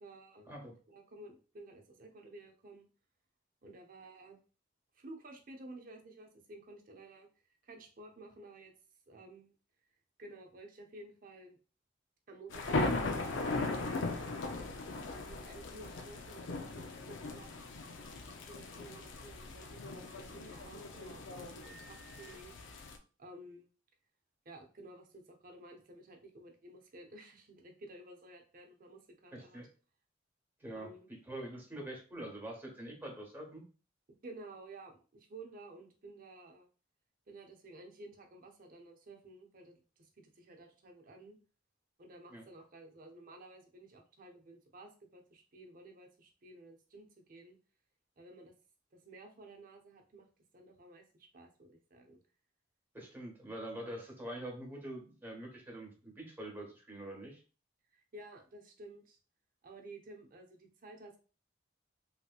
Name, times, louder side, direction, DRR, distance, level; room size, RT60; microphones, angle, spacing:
voice 1, 0.0-0.5 0.9-2.9 3.6-4.4 4.9-7.3 7.6-8.7 9.1-9.5 10.2-11.6 12.3-13.4 13.9-14.4 14.7-17.5 18.5-22.5 23.2-23.7 24.4-29.7 30.7-31.1 34.2-36.7 37.3-41.4 42.0-47.6 48.2-48.5 48.9-50.3 50.5-52.2 57.9-59.2 59.6-61.2, right 2 dB, 50° right, 3 dB, 0.7 m, -53 dB
sound 1, 12.5-23.0, left 3 dB, 75° left, 0.5 m, -38 dB
voice 2, 29.3-29.7 30.6-30.9 31.3-33.6 42.3-42.4 52.9-57.4, right 1 dB, 10° right, -1 dB, 1.0 m, -45 dB
3.3 x 2.8 x 2.4 m, 0.36 s
head